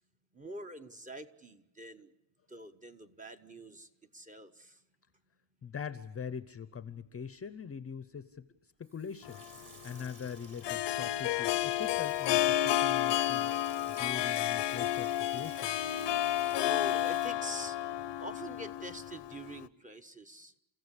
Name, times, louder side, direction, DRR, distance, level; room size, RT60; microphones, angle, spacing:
voice 1, 0.3-2.1 2.5-3.9 4.1-4.8 16.6-17.8 18.2-20.5, right 1 dB, 15° right, 8 dB, 1.1 m, -45 dB
voice 2, 5.6-8.5 8.8-13.5 13.9-15.8, left 7 dB, 30° left, 13 dB, 0.7 m, -42 dB
Water tap faucet / Sink (filling or washing), 8.8-18.6 18.9-19.0, right 4 dB, 40° right, 3.2 m, -54 dB
Harp, 9.3-19.7, left 13 dB, 55° left, 0.7 m, -31 dB
30.0 x 15.5 x 8.3 m, 0.93 s
cardioid pair, 160°, 50 cm